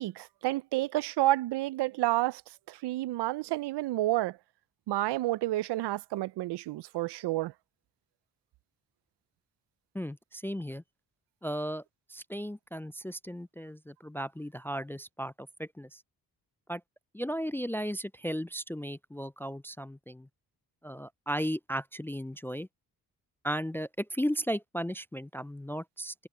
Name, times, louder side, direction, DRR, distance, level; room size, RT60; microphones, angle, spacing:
voice 1, 0.0-2.4 2.7-4.4 4.9-7.5, right 16 dB, 85° right, 0.6 m, -30 dB
voice 2, 9.9-10.8 11.4-11.8 12.1-16.0 16.7-16.8 17.1-20.3 20.8-22.7 23.4-26.1, equal, 5° left, 0.3 m, -35 dB
cardioid pair, 60°, 40 cm